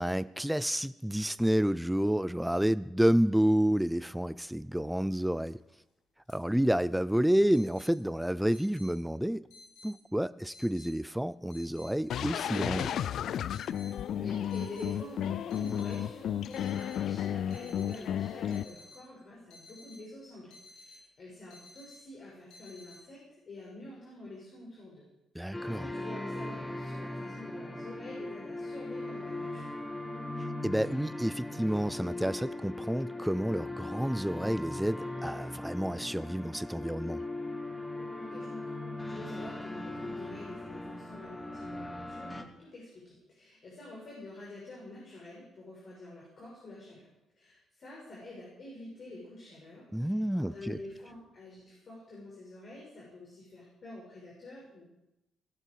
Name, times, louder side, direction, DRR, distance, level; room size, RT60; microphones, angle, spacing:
voice 1, 0.0-5.6 6.3-9.4 9.8-12.9 25.4-25.9 30.6-37.2 49.9-50.8, equal, 5° right, 0.4 m, -29 dB
sound 1, 5.6-5.8 6.3-6.4 7.5-7.9 8.5-8.9 9.5-9.9 10.5-10.9 11.5-11.9 12.5-12.9 13.5-13.9 14.5-14.9 15.5-16.0 16.5-17.0 17.5-18.0 18.5-19.0 19.5-20.0 20.5-21.0 21.5-22.0 22.5-23.0, left 2 dB, 85° left, 6.4 m, -53 dB
sound 2, 12.1-18.6, left 10 dB, 70° left, 0.4 m, -33 dB
voice 2, 13.9-25.0 25.4-29.8 38.2-47.1 47.4-54.8, left 2 dB, 50° left, 6.0 m, -47 dB
sound 3, 25.5-42.4, left 2 dB, 10° left, 1.6 m, -39 dB
18.0 x 12.5 x 4.7 m
cardioid pair, 90°, 0 cm